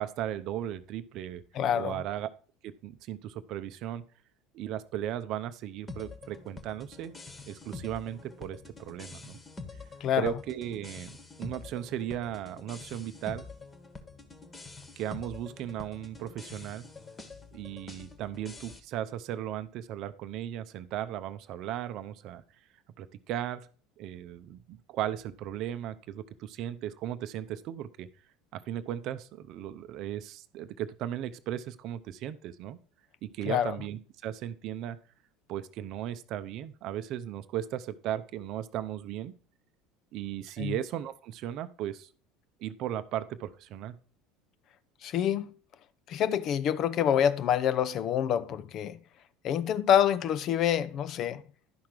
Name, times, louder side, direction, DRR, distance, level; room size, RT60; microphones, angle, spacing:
voice 1, 0.0-1.4 1.7-2.3 2.6-4.0 4.5-7.1 7.5-9.4 10.2-11.1 11.4-13.5 15.0-16.9 17.5-22.4 23.0-23.7 24.0-28.1 28.5-32.8 33.2-35.0 35.5-39.3 40.1-42.1 42.6-44.0, right 11 dB, 50° right, 0.6 m, -36 dB
voice 2, 1.6-2.0 10.0-10.3 33.5-33.7 40.6-40.7 45.0-45.5 46.1-49.0 49.4-51.4, left 9 dB, 45° left, 0.5 m, -27 dB
sound 1, 5.9-18.8, left 3 dB, 20° left, 1.4 m, -46 dB
11.5 x 5.8 x 4.8 m
figure-of-eight pair, 70°, 0 cm